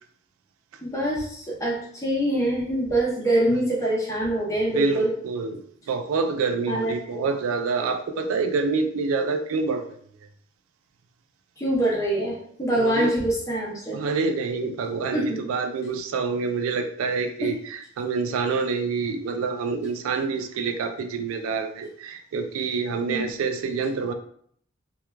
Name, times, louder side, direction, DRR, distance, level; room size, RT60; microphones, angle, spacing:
voice 1, 0.8-5.1 6.7-7.3 11.6-14.1 15.1-15.4 17.4-17.5 23.1-23.3, right 1 dB, 15° left, -4 dB, 0.7 m, -25 dB
voice 2, 4.7-9.9 12.7-13.1 13.9-24.1, right 4 dB, 85° right, 6 dB, 0.3 m, -27 dB
3.1 x 2.2 x 2.2 m, 0.62 s
head